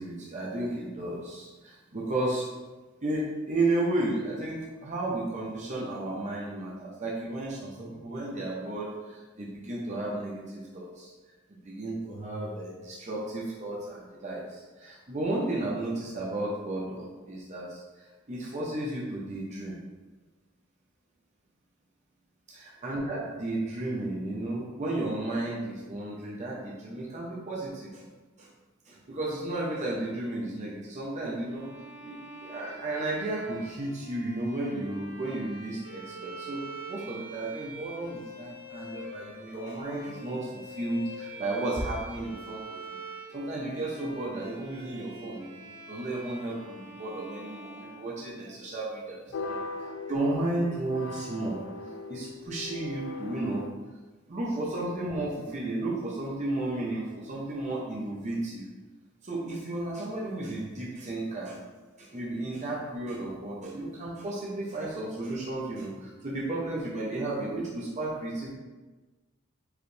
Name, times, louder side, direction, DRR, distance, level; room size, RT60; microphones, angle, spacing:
voice 1, 0.0-2.5 3.0-11.1 11.5-19.8 22.8-28.0 28.4-28.5 28.9-31.7 32.0-36.6 36.9-42.8 43.3-49.2 49.5-49.6 50.1-51.6 52.1-53.7 54.3-58.7 59.2-61.6 62.0-68.5, right 2 dB, 35° right, -5 dB, 0.8 m, -33 dB
Bowed string instrument, 31.5-48.7, right 2 dB, 85° right, 1.1 m, -45 dB
sound 1, 49.3-53.7, left 3 dB, 65° left, 0.4 m, -40 dB
4.9 x 3.2 x 3.2 m, 1.2 s
head